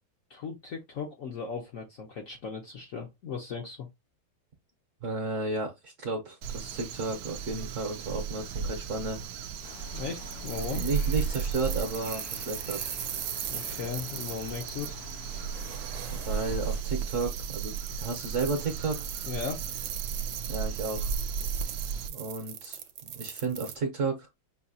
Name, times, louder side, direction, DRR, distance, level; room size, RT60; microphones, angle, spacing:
voice 1, 0.3-3.9 9.9-10.9 13.5-15.0 19.3-19.6, left 5 dB, 55° left, 0.9 m, -37 dB
voice 2, 5.0-9.2 10.7-12.9 16.1-19.1 20.5-21.1 22.1-24.3, right 3 dB, 50° right, 1.1 m, -33 dB
Crow, 6.4-22.1, right 7 dB, 85° right, 0.8 m, -35 dB
sound 1, 9.6-16.8, left 7 dB, 80° left, 0.8 m, -47 dB
sound 2, 10.3-23.7, right 10 dB, 70° right, 1.2 m, -40 dB
5.6 x 2.8 x 2.8 m
omnidirectional pair, 2.2 m